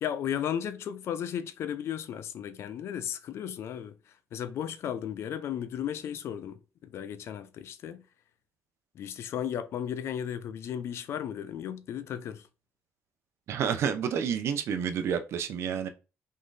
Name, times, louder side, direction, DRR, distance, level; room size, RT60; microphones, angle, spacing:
voice 1, 0.0-4.0 4.3-8.0 9.0-12.5, left 9 dB, 65° left, 0.5 m, -35 dB
voice 2, 13.5-15.9, right 7 dB, 70° right, 0.7 m, -29 dB
3.8 x 3.1 x 3.9 m
cardioid pair, 90°, 5 cm